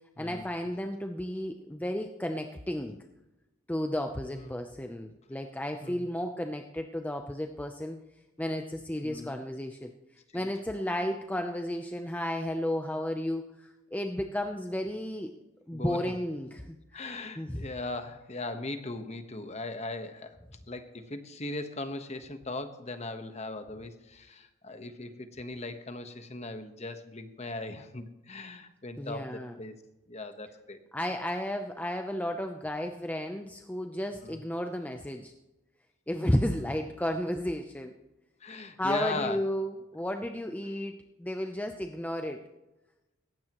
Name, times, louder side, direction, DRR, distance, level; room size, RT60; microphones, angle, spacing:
voice 1, 0.2-3.0 3.7-8.0 8.4-9.9 10.3-15.3 15.7-17.0 17.4-17.6 29.0-29.6 30.9-35.3 36.1-37.9 38.8-42.4, left 1 dB, 5° left, 5 dB, 0.6 m, -33 dB
voice 2, 4.3-4.6 5.8-6.1 9.0-9.4 10.3-10.5 15.7-16.1 16.9-20.4 20.7-29.7 30.1-30.8 34.2-34.4 36.6-36.7 38.4-39.4, left 2 dB, 30° left, 8 dB, 1.1 m, -39 dB
18.5 x 15.5 x 3.0 m, 1.0 s
head